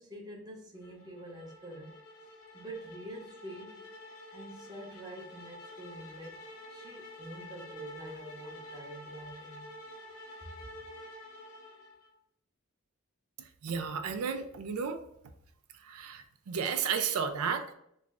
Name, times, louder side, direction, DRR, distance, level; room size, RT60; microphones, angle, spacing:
voice 1, 0.0-3.9 4.3-9.7 10.4-10.5, right 1 dB, 20° right, 0.6 m, -47 dB
sound 1, 0.8-12.2, left 1 dB, 80° left, 0.7 m, -49 dB
voice 2, 13.6-15.0 15.8-17.7, right 6 dB, 85° right, 0.4 m, -33 dB
3.1 x 2.4 x 3.3 m
head